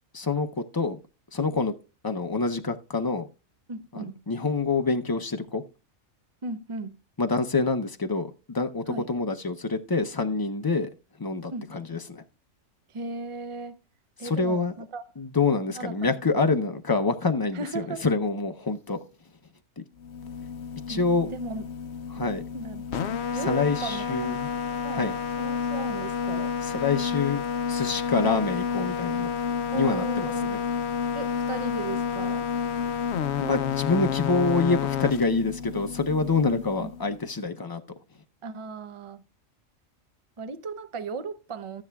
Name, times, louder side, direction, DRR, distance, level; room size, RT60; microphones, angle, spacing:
voice 1, 0.1-1.0 1.3-1.7 2.0-3.3 3.9-5.6 7.2-10.9 11.2-12.2 14.2-14.7 15.2-19.0 19.8-19.9 20.9-21.3 22.1-22.4 23.4-24.5 24.9-25.2 26.6-27.4 27.7-29.3 29.7-30.6 33.4-37.8, left 4 dB, 35° left, 0.3 m, -26 dB
voice 2, 3.7-4.2 6.4-7.0 8.9-9.1 11.5-11.7 12.9-13.8 14.2-15.0 15.8-16.4 17.5-18.1 20.9-21.6 22.2-24.3 24.8-25.1 25.4-26.5 29.7-30.5 31.1-32.5 36.5-36.9 38.4-39.2 40.4-41.8, right 4 dB, 35° right, 0.5 m, -37 dB
sound 1, 20.0-37.2, left 7 dB, 60° left, 0.9 m, -30 dB
13.0 x 9.7 x 2.3 m
omnidirectional pair, 1.4 m